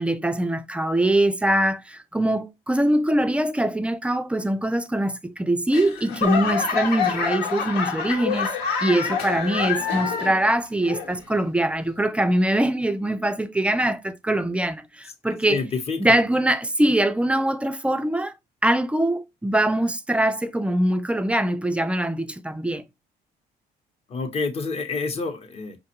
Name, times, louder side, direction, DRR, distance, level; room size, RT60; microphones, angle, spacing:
voice 1, 0.0-8.5 8.8-15.6 16.0-18.3 18.6-22.8, right 1 dB, 5° right, 0.3 m, -23 dB
Laughter / Clapping / Crowd, 5.7-10.5 10.8-11.4 11.9-12.0, left 6 dB, 90° left, 1.2 m, -26 dB
voice 2, 15.5-16.2 24.1-25.8, left 4 dB, 35° left, 0.8 m, -28 dB
5.1 x 2.3 x 2.8 m
cardioid pair, 110°, 17 cm